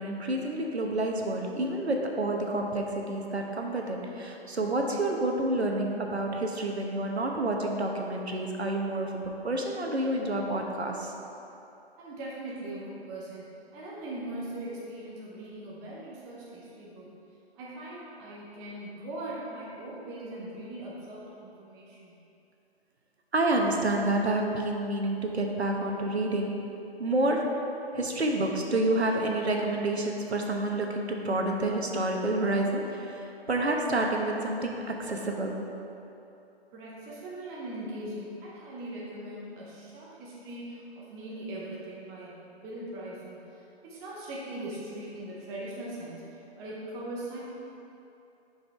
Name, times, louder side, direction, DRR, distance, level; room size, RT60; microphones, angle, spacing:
voice 1, 0.0-11.1 23.3-26.6 27.0-27.5 27.9-35.7, right 2 dB, 85° right, 1 dB, 1.1 m, -29 dB
voice 2, 12.0-13.5 13.7-17.1 17.5-22.2 36.7-47.4, right 1 dB, 10° right, -6 dB, 0.6 m, -40 dB
6.8 x 5.3 x 4.6 m, 2.9 s
figure-of-eight pair, 140°, 31 cm